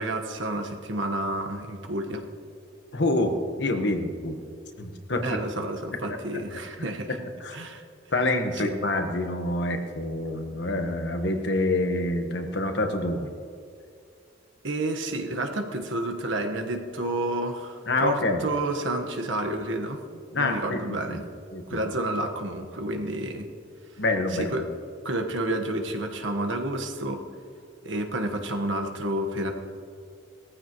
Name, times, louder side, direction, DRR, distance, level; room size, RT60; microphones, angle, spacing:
voice 1, 0.0-2.2 5.2-7.2 7.5-7.8 8.5-8.7 14.6-21.2 21.7-23.5 24.3-24.7 25.0-27.2 27.8-29.5, right 1 dB, 85° right, 3 dB, 1.4 m, -30 dB
voice 2, 2.9-4.4 4.8-5.4 5.9-6.0 6.8-6.9 7.4-7.6 8.1-13.3 17.9-18.4 20.3-21.2 21.5-21.8 24.0-24.6, left 2 dB, 65° left, 5 dB, 1.3 m, -27 dB
19.0 x 14.5 x 3.1 m, 2.3 s
head